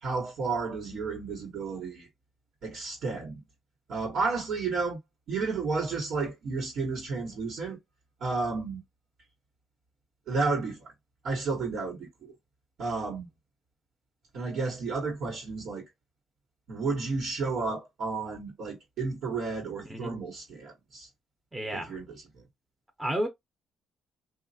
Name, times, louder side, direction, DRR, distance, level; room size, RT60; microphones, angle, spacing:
voice 1, 0.0-2.1 2.6-3.4 3.9-5.0 5.3-7.8 8.2-8.8 10.3-10.9 11.2-12.3 12.8-13.3 14.3-15.8 16.7-21.1 21.7-22.2, right 4 dB, 75° right, 1.3 m, -32 dB
voice 2, 19.9-20.3 21.5-21.9 23.0-23.3, right 1 dB, 10° right, 0.7 m, -32 dB
3.1 x 2.4 x 2.7 m
cardioid pair, 90°, 0 cm